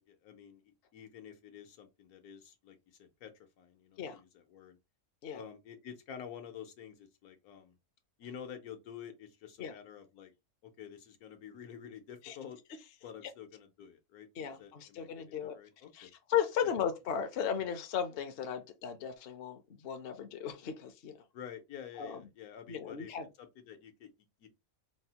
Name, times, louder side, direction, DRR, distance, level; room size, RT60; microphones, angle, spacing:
voice 1, 0.0-3.3 3.6-4.8 5.3-7.8 8.2-10.3 10.6-12.6 13.0-14.3 14.6-16.1 16.6-16.7 17.6-17.7 21.3-23.1 23.4-24.1 24.4-24.5, left 8 dB, 80° left, 1.3 m, -49 dB
voice 2, 14.4-15.6 15.9-21.2 22.0-22.2 22.7-23.3, left 8 dB, 55° left, 0.7 m, -36 dB
4.2 x 2.0 x 2.8 m
omnidirectional pair, 1.5 m